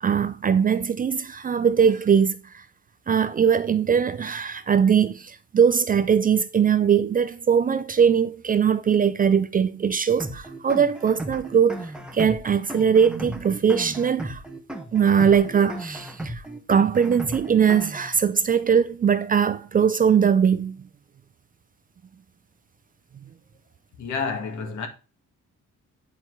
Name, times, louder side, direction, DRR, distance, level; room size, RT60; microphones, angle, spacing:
voice 1, 0.0-2.6 3.1-14.4 14.9-16.4 16.7-20.8, right 7 dB, 30° right, 0.4 m, -21 dB
sound 1, 10.2-18.2, right 1 dB, 5° right, 1.0 m, -35 dB
voice 2, 24.0-24.9, left 5 dB, 70° left, 2.0 m, -29 dB
10.0 x 4.5 x 4.7 m
cardioid pair, 170°, 31 cm